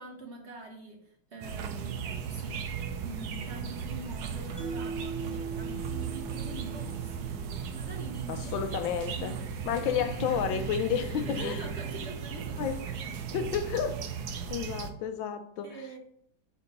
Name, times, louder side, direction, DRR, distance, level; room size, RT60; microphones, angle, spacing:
voice 1, 0.0-9.4 9.7-13.5 14.4-14.6 15.6-16.0, right 2 dB, 45° right, 0.9 m, -45 dB
sound 1, 1.4-14.9, right 6 dB, 75° right, 0.9 m, -36 dB
Mallet percussion, 4.6-7.8, right 5 dB, 10° left, 0.6 m, -40 dB
voice 2, 8.3-9.4 9.6-11.6 12.6-12.8 13.3-14.0 14.5-15.7, left 8 dB, 75° left, 1.3 m, -31 dB
4.8 x 4.3 x 5.4 m
omnidirectional pair, 2.4 m